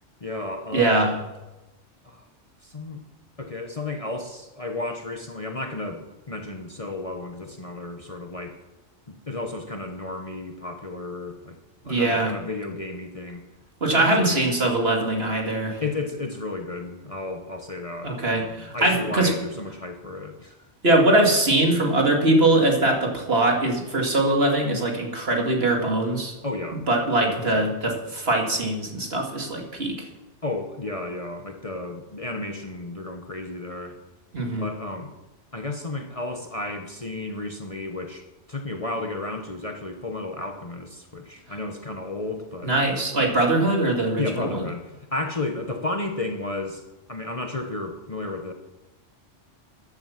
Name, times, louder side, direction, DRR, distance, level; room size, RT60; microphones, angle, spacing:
voice 1, 0.2-1.1 2.0-2.3 2.6-3.0 3.4-8.5 9.1-11.6 11.8-13.4 13.9-14.4 15.8-20.6 26.4-26.8 27.2-27.6 30.4-34.0 34.5-35.1 35.5-42.7 44.2-46.8 47.1-48.5, left 2 dB, 30° left, 4 dB, 1.0 m, -33 dB
voice 2, 0.7-1.1 11.8-12.3 13.8-15.8 18.0-19.3 20.8-26.3 26.9-30.1 34.3-34.6 42.6-44.7, right 2 dB, 55° right, 1 dB, 2.7 m, -22 dB
14.5 x 11.0 x 5.9 m, 1.0 s
omnidirectional pair, 1.3 m